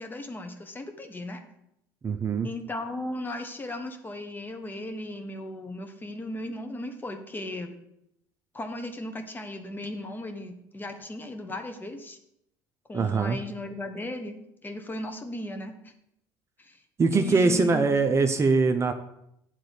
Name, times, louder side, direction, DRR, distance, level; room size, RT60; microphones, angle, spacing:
voice 1, 0.0-1.4 2.4-7.7 8.5-12.2 12.9-14.3 14.6-15.7 16.6-16.7 17.1-18.1, left 1 dB, 20° left, 6 dB, 1.2 m, -36 dB
voice 2, 2.0-2.5 12.9-13.4 17.0-18.9, right 4 dB, 30° right, 7 dB, 0.7 m, -22 dB
9.0 x 3.9 x 6.6 m, 0.79 s
supercardioid pair, 95°, 10 cm